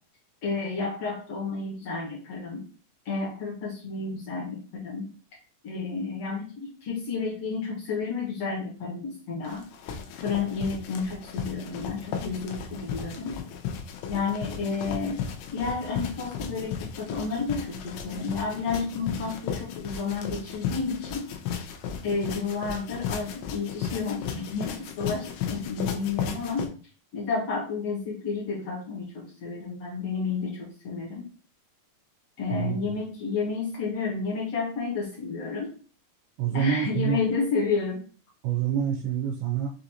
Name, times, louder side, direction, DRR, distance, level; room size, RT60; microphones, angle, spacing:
voice 1, 0.4-2.6 3.0-5.0 5.6-9.6 10.2-13.3 14.1-21.3 22.0-26.7 27.1-31.3 32.4-35.7 36.5-38.0, left 4 dB, 60° left, -4 dB, 1.7 m, -31 dB
sound 1, 9.4-26.7, left 7 dB, 90° left, 2.7 m, -35 dB
voice 2, 32.5-32.9 36.4-37.2 38.4-39.7, right 9 dB, 85° right, 0 dB, 2.5 m, -27 dB
6.2 x 2.6 x 2.9 m, 0.38 s
omnidirectional pair, 4.4 m